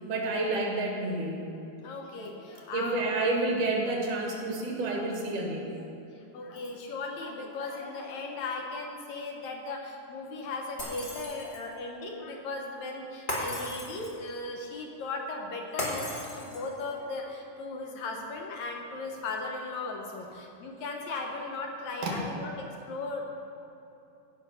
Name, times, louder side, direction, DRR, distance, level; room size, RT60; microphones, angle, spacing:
voice 1, 0.1-1.4 2.7-5.7 22.0-22.2, right 2 dB, 75° right, 0 dB, 3.2 m, -29 dB
voice 2, 1.8-3.3 6.2-23.2, left 3 dB, 70° left, 1 dB, 2.1 m, -37 dB
Shatter, 10.8-11.7 13.3-14.3 15.8-16.8, left 1 dB, 20° left, 1.4 m, -35 dB
16.5 x 5.8 x 5.6 m, 2.9 s
omnidirectional pair, 3.7 m